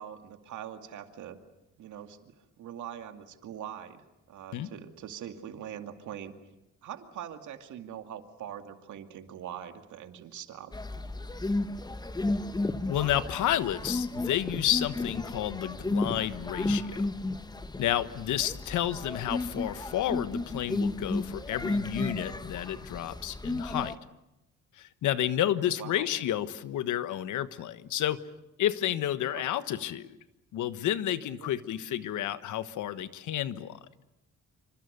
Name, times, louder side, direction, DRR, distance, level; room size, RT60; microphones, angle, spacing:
voice 1, 0.0-1.4 1.8-6.4 6.8-10.7 25.6-26.1 29.3-29.4 31.4-31.5, right 10 dB, 75° right, 7 dB, 2.4 m, -43 dB
sound 1, 10.7-23.9, left 2 dB, 15° left, 1.1 m, -33 dB
voice 2, 12.9-17.0 17.8-23.9 24.8-28.2 28.6-30.1 30.5-33.8, left 12 dB, 80° left, 13 dB, 1.4 m, -30 dB
27.0 x 26.0 x 6.8 m, 0.93 s
cardioid pair, 90°, 30 cm